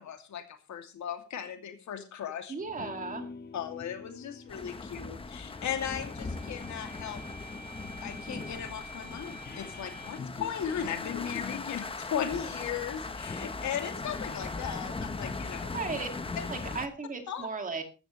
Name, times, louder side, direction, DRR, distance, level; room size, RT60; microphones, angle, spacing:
voice 1, 0.0-2.5 3.5-7.2 7.8-15.7 16.4-16.5 17.3-17.5, left 8 dB, 75° left, 6 dB, 2.6 m, -37 dB
voice 2, 2.5-3.3 15.7-16.1 16.5-17.8, right 4 dB, 25° right, 6 dB, 2.3 m, -35 dB
sound 1, 2.6-11.7, left 4 dB, 35° left, 1.8 m, -45 dB
sound 2, 4.5-16.9, left 3 dB, 20° left, 1.0 m, -39 dB
16.0 x 13.5 x 3.2 m, 0.32 s
wide cardioid pair, 165°, 29 cm